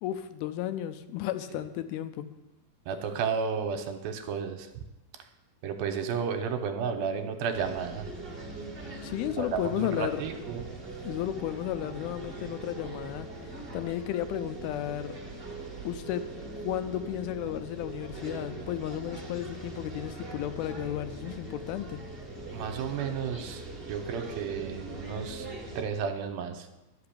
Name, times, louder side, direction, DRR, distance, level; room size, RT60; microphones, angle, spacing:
voice 1, 0.0-2.3 9.0-10.2 11.0-13.3 13.7-15.2 15.8-16.3 16.6-22.0, left 12 dB, 80° left, 11 dB, 2.4 m, -33 dB
voice 2, 2.9-4.8 5.6-8.1 9.4-10.6 22.5-25.5 25.8-26.7, right 6 dB, 80° right, 6 dB, 2.5 m, -32 dB
sound 1, 7.5-25.8, right 2 dB, 30° right, 0.9 m, -41 dB
11.5 x 5.8 x 8.4 m, 1.0 s
omnidirectional pair, 4.5 m